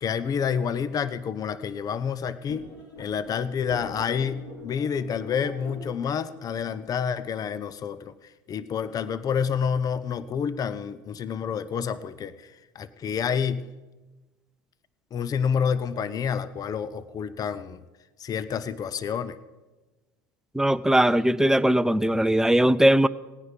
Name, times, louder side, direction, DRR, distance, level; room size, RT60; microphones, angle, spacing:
voice 1, 0.0-2.6 3.0-8.1 8.5-12.5 12.7-13.6 15.1-17.8 18.2-19.4, left 7 dB, 35° left, 16 dB, 0.7 m, -28 dB
sound 1, 2.5-7.6, left 3 dB, 80° left, 3.9 m, -45 dB
voice 2, 20.5-23.1, right 1 dB, 5° right, 15 dB, 0.5 m, -20 dB
18.0 x 9.4 x 5.9 m, 1.2 s
supercardioid pair, 90°, 11 cm